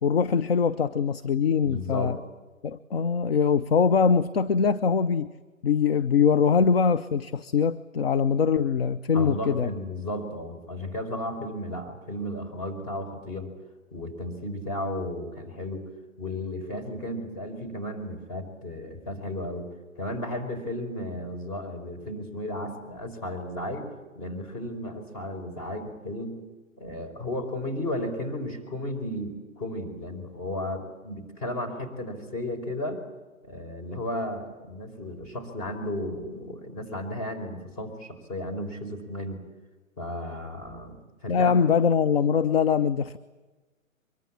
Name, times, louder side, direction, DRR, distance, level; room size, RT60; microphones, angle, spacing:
voice 1, 0.0-2.2 2.6-5.3 5.6-9.7 41.3-43.2, left 6 dB, 45° left, 12 dB, 0.8 m, -23 dB
voice 2, 1.6-2.2 9.1-13.5 13.9-15.9 16.2-19.7 20.0-26.4 26.8-33.0 33.4-39.4 40.0-41.6, left 1 dB, 30° left, 4 dB, 4.8 m, -34 dB
23.5 x 23.5 x 8.7 m, 1.2 s
figure-of-eight pair, 130°, 41 cm